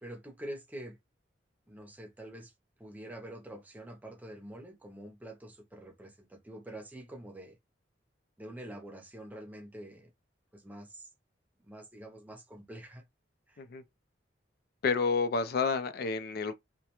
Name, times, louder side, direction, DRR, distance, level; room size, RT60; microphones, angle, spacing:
voice 1, 0.0-1.0 1.7-2.5 2.8-7.6 8.4-10.1 10.5-11.1 11.6-13.0 13.5-13.6, right 1 dB, 10° right, 0.6 m, -46 dB
voice 2, 14.8-16.5, left 5 dB, 55° left, 0.4 m, -30 dB
2.3 x 2.1 x 2.9 m
head